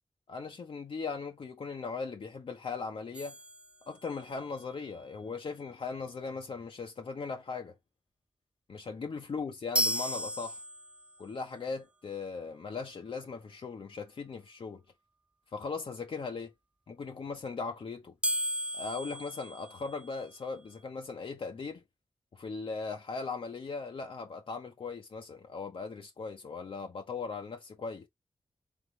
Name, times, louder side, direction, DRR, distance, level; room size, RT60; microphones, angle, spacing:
voice 1, 0.3-3.4 3.9-7.7 8.7-10.6 11.2-14.8 15.5-16.5 16.9-18.1 18.7-21.8 22.3-28.1, left 4 dB, 70° left, 0.8 m, -39 dB
sound 1, 3.1-4.4 9.7-11.2 18.2-20.4, equal, 10° right, 0.3 m, -35 dB
3.6 x 3.6 x 3.0 m
cardioid pair, 65°, 9 cm